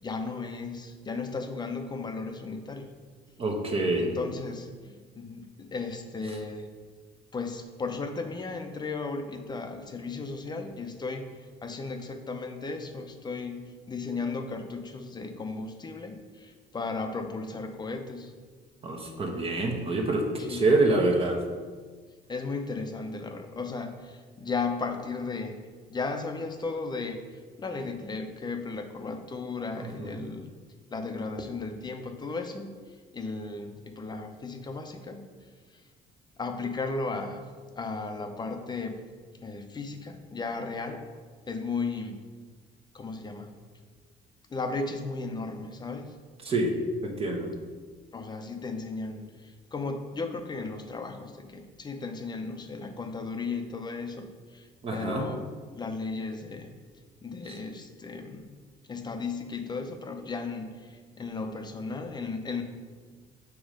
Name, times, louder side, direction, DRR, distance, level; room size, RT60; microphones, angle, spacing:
voice 1, 0.0-2.9 4.0-6.7 7.3-11.3 11.6-18.3 20.4-20.7 22.3-25.6 25.9-27.2 27.6-30.5 30.9-32.8 33.1-35.2 36.4-37.4 37.8-39.0 39.4-41.0 41.5-42.2 42.9-43.6 44.5-46.1 48.1-55.4 55.7-56.7 57.2-58.5 58.9-62.6, left 4 dB, 25° left, 5 dB, 0.6 m, -35 dB
voice 2, 3.4-4.1 18.8-21.4 30.0-30.2 46.4-46.7 47.0-47.5 54.8-55.3 57.5-57.6, right 2 dB, 35° right, 2 dB, 1.0 m, -26 dB
7.1 x 3.1 x 5.0 m, 1.5 s
cardioid pair, 110°, 17 cm